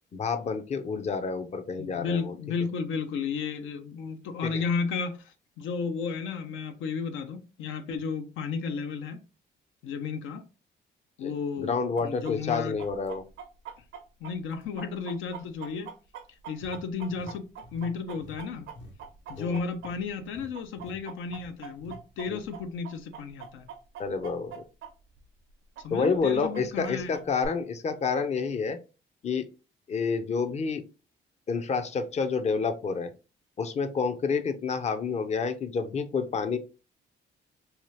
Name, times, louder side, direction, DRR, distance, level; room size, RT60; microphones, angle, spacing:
voice 1, 0.1-2.3 4.4-4.6 11.2-13.2 19.4-19.6 22.3-22.4 24.0-24.6 25.9-28.8 29.2-29.5 29.9-30.8 31.5-33.1 33.6-36.6, left 5 dB, 35° left, 0.5 m, -29 dB
voice 2, 1.8-9.2 9.8-10.5 11.2-12.8 14.2-15.9 16.3-18.7 19.3-23.7 25.8-27.2, left 5 dB, 80° left, 0.5 m, -33 dB
Chicken rooster, 12.0-20.3 20.6-24.9 25.2-25.3 25.8-27.5, right 7 dB, 80° right, 0.6 m, -43 dB
sound 1, 16.6-19.5 19.8-20.0 20.3-20.5 20.8-21.0 21.3-22.0, left 1 dB, 60° left, 0.9 m, -48 dB
2.8 x 2.3 x 3.1 m
cardioid pair, 90°, 20 cm